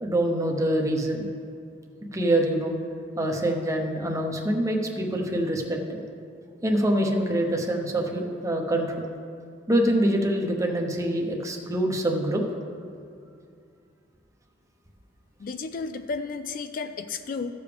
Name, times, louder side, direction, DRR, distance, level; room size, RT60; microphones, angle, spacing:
voice 1, 0.0-1.3 2.1-2.7 3.2-6.0 6.6-9.0 9.7-12.4, right 1 dB, 15° right, 1 dB, 0.8 m, -25 dB
voice 2, 15.4-17.5, left 4 dB, 45° left, 8 dB, 0.3 m, -33 dB
15.0 x 6.8 x 3.4 m, 2.4 s
head